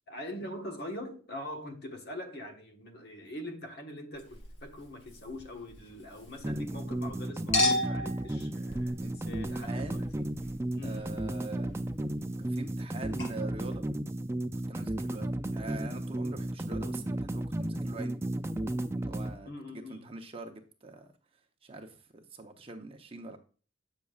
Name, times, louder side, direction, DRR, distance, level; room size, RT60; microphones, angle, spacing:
voice 1, 0.1-10.3 10.7-11.1 15.1-15.3 19.4-20.1, left 1 dB, 55° left, 1.4 m, -43 dB
Chink clink, 4.2-7.1 7.5-12.9 13.2-13.3, left 2 dB, 75° left, 4.0 m, -36 dB
sound 1, 6.4-19.4, right 1 dB, 15° right, 0.3 m, -34 dB
voice 2, 9.5-10.1 10.8-11.7 12.5-13.8 14.7-18.2 18.9-21.1 21.6-23.4, right 2 dB, 30° right, 0.8 m, -44 dB
8.2 x 6.7 x 2.4 m
head